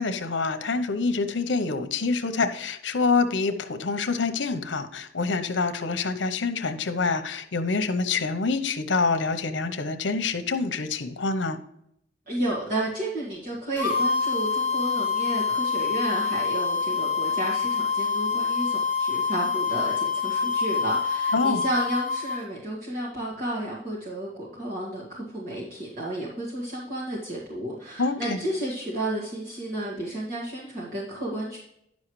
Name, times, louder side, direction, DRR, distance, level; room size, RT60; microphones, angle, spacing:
voice 1, 0.0-11.6 21.3-21.6 28.0-28.4, left 4 dB, 85° left, 9 dB, 0.8 m, -26 dB
voice 2, 12.3-31.6, right 1 dB, 45° right, -6 dB, 1.9 m, -32 dB
sound 1, 13.8-22.4, left 5 dB, 30° right, 1.6 m, -26 dB
10.5 x 6.3 x 3.1 m, 0.76 s
head